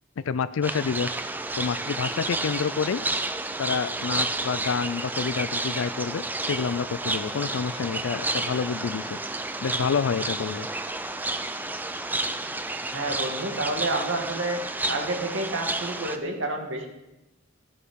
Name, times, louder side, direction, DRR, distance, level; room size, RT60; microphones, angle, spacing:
voice 1, 0.2-1.2 1.6-3.0 3.6-9.2 9.6-10.7, left 6 dB, 80° left, 14 dB, 0.4 m, -28 dB
sound 1, 0.6-16.2, right 2 dB, 10° right, 0.5 m, -31 dB
voice 2, 12.9-14.6 14.9-16.9, right 2 dB, 70° right, 2 dB, 2.2 m, -29 dB
14.5 x 8.6 x 5.3 m, 0.96 s
head